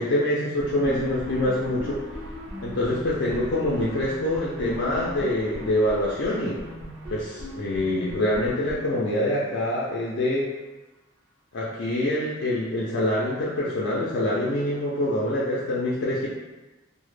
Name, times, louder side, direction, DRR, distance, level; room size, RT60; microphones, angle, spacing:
voice 1, 0.0-2.0 2.6-6.6 7.1-10.5 11.5-16.3, left 1 dB, 65° left, -6 dB, 0.4 m, -25 dB
sound 1, 0.6-9.4, equal, 80° right, 0.7 m, -37 dB
2.0 x 2.0 x 3.1 m, 1.1 s
head